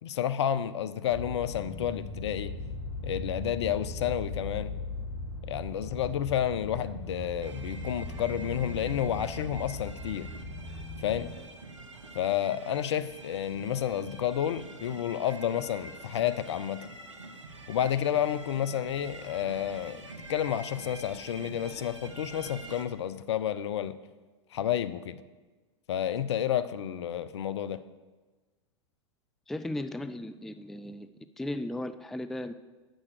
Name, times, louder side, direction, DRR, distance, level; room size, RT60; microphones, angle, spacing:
voice 1, 0.0-2.5 3.0-4.7 5.4-10.3 11.0-11.3 12.1-16.9 17.7-23.9 24.5-25.2 25.9-27.8, left 10 dB, 65° left, 13 dB, 0.5 m, -30 dB
sound 1, 1.1-11.4, left 2 dB, 25° left, 1.7 m, -39 dB
sound 2, 7.4-22.9, right 2 dB, 90° right, 0.9 m, -46 dB
voice 2, 29.5-32.5, left 1 dB, ahead, 11 dB, 0.3 m, -36 dB
8.5 x 6.3 x 6.5 m, 1.3 s
figure-of-eight pair, 95°, 15 cm